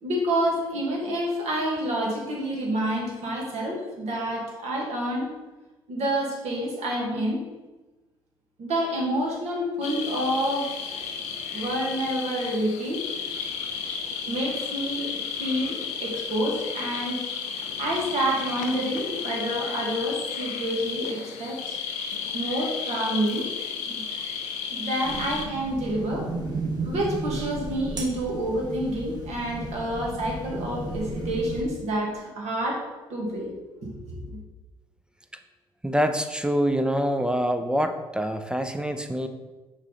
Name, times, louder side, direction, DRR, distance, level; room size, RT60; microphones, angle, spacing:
voice 1, 0.0-5.3 5.9-7.4 8.6-10.9 11.5-13.0 14.3-17.3 17.8-21.8 22.3-23.5 23.9-24.0 24.7-26.2 26.8-32.8 33.1-33.5 34.1-34.4, right 1 dB, 60° right, -2 dB, 1.8 m, -28 dB
sound 1, 9.8-25.5, left 6 dB, 70° left, 0.6 m, -33 dB
sound 2, 25.0-31.6, right 3 dB, 30° right, 1.5 m, -34 dB
voice 2, 35.8-39.3, equal, 5° right, 8 dB, 0.5 m, -25 dB
6.3 x 3.7 x 4.0 m, 1.2 s
hypercardioid pair, 50°, 13 cm